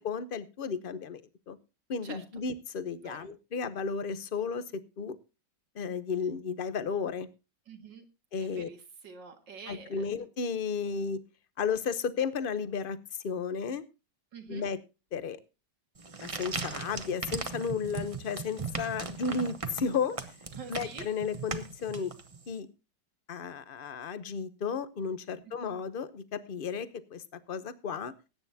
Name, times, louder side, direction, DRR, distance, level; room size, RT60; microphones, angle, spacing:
voice 1, 0.0-1.2 1.5-1.6 1.9-5.2 5.7-7.3 8.3-8.7 9.7-11.2 11.6-13.0 13.2-13.8 14.5-14.8 15.1-15.4 16.2-20.2 20.7-22.1 22.5-22.7 23.3-28.1, left 5 dB, 45° left, 14 dB, 0.7 m, -33 dB
voice 2, 2.0-2.4 3.0-3.2 7.7-8.0 8.4-10.3 14.3-14.7 20.5-21.1 25.6-25.8, right 5 dB, 80° right, 6 dB, 2.6 m, -46 dB
sound 1, 16.0-22.5, right 4 dB, 25° right, 0.9 m, -38 dB
20.5 x 9.6 x 2.7 m, 0.29 s
omnidirectional pair, 1.9 m